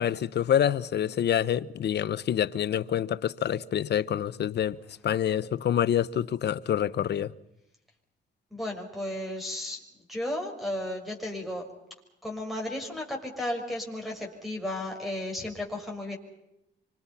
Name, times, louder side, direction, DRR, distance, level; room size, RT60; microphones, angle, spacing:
voice 1, 0.0-4.8 5.0-7.3, left 10 dB, 60° left, 1.0 m, -27 dB
voice 2, 8.5-9.8 10.1-11.7 12.2-16.2, left 1 dB, ahead, 6.4 m, -34 dB
27.0 x 25.0 x 5.7 m
cardioid pair, 90°, 20 cm